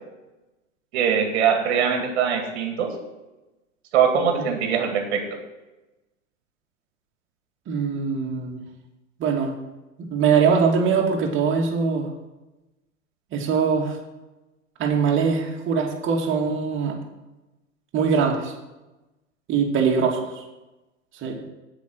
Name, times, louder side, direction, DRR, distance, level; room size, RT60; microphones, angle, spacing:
voice 1, 0.9-2.9 3.9-5.4, right 7 dB, 55° right, 4 dB, 2.1 m, -22 dB
voice 2, 7.7-8.6 9.2-9.5 10.1-12.1 13.3-14.0 14.8-17.0 17.9-18.5 19.5-20.4 21.2-21.4, right 6 dB, 30° right, 0 dB, 2.3 m, -22 dB
16.5 x 5.7 x 4.7 m, 1.0 s
figure-of-eight pair, 90°, 38 cm